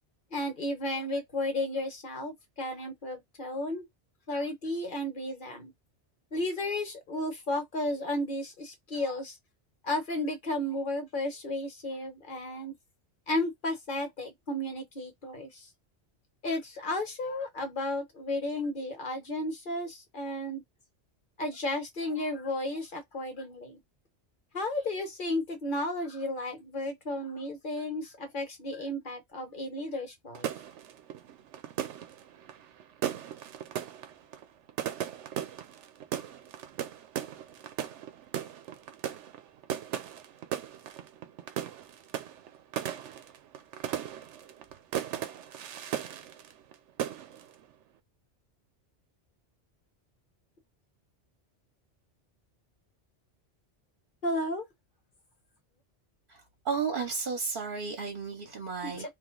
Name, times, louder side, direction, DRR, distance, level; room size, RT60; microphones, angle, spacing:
voice 1, 0.3-3.8 4.3-5.7 6.3-9.4 9.8-12.7 13.3-15.7 16.4-20.6 21.4-23.8 24.5-30.5 54.2-54.6 58.8-59.1, left 1 dB, 50° left, 1.1 m, -33 dB
sound 1, 30.3-46.7 47.0-47.5, right 10 dB, 85° right, 0.9 m, -37 dB
voice 2, 56.3-59.1, right 5 dB, 55° right, 1.0 m, -33 dB
2.9 x 2.5 x 3.8 m
omnidirectional pair, 1.2 m